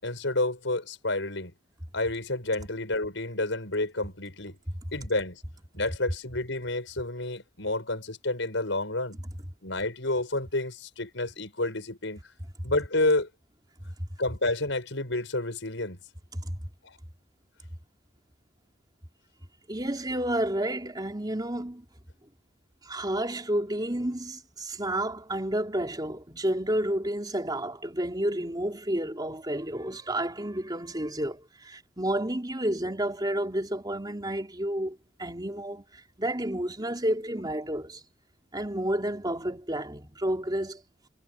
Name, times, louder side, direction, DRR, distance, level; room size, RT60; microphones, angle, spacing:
voice 1, 0.0-1.5 1.9-4.6 4.9-5.4 5.7-9.2 9.6-12.2 12.6-13.3 14.2-16.0 16.8-16.9, left 2 dB, 70° left, 6.8 m, -29 dB
voice 2, 19.7-21.9 22.8-38.0 38.5-40.8, right 1 dB, 20° right, 3.7 m, -30 dB
head